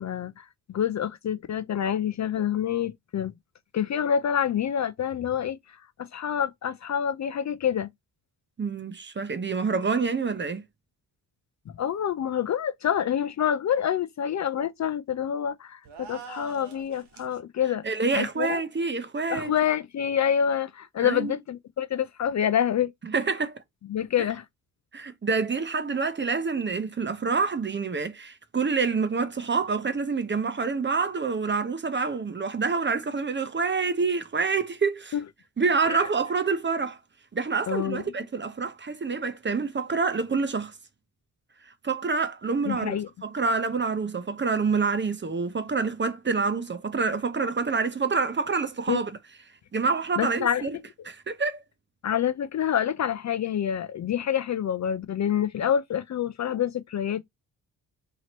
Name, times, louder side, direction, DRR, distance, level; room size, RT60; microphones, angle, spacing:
voice 1, 0.0-3.3 3.7-5.6 6.0-7.9 11.8-17.8 18.1-18.6 19.3-22.9 23.9-24.4 35.1-35.2 35.9-36.0 37.7-38.0 42.7-43.1 48.9-49.0 50.2-50.7 52.0-57.2, left 9 dB, 40° left, 0.5 m, -27 dB
voice 2, 8.6-10.6 17.8-19.5 21.0-21.3 23.0-23.6 24.9-35.2 35.6-37.0 37.3-40.7 41.8-43.0 43.2-49.1 49.7-50.8 51.0-51.6, right 4 dB, 25° right, 0.7 m, -27 dB
sound 1, 15.8-17.4, right 6 dB, 65° right, 1.1 m, -44 dB
2.8 x 2.8 x 2.9 m
hypercardioid pair, 45°, 44 cm